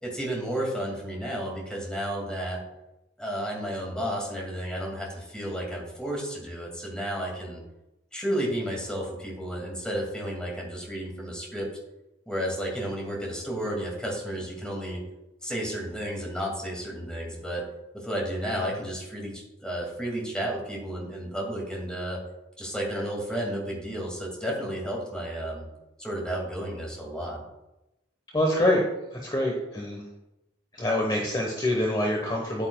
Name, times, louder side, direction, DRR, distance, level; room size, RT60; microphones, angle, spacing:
voice 1, 0.0-2.6 3.2-7.6 8.1-11.7 12.3-15.0 15.4-17.7 17.9-22.2 22.6-25.7 26.0-27.4, equal, 5° left, -2 dB, 2.2 m, -32 dB
voice 2, 28.3-28.8 29.2-30.0 30.8-32.7, left 1 dB, 25° left, 0 dB, 1.1 m, -25 dB
9.7 x 8.9 x 2.3 m, 0.92 s
head